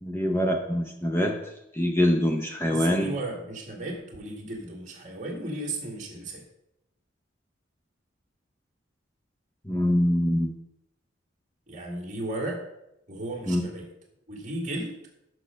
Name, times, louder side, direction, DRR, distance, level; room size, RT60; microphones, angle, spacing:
voice 1, 0.0-1.4 1.7-3.2 9.7-10.5 13.5-13.6, equal, 10° left, 2 dB, 0.6 m, -24 dB
voice 2, 2.6-6.4 11.7-12.7 13.1-13.9 14.3-14.9, right 1 dB, 40° right, -1 dB, 1.9 m, -35 dB
6.6 x 6.3 x 5.6 m, 0.83 s
head